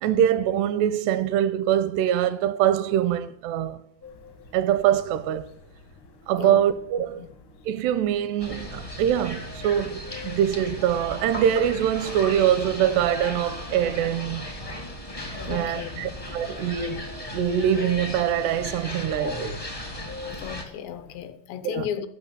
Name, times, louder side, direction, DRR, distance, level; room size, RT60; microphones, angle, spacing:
voice 1, 0.0-3.8 4.5-5.5 6.3-7.3 7.7-14.5 15.5-19.6 21.6-21.9, right 10 dB, 80° right, 2.7 m, -24 dB
sound 1, 4.0-21.3, left 5 dB, 65° left, 1.2 m, -46 dB
sound 2, 8.4-20.6, left 1 dB, 45° left, 0.4 m, -36 dB
voice 2, 15.4-16.2 20.3-22.1, left 9 dB, 80° left, 3.1 m, -34 dB
13.5 x 6.2 x 9.6 m
omnidirectional pair, 4.9 m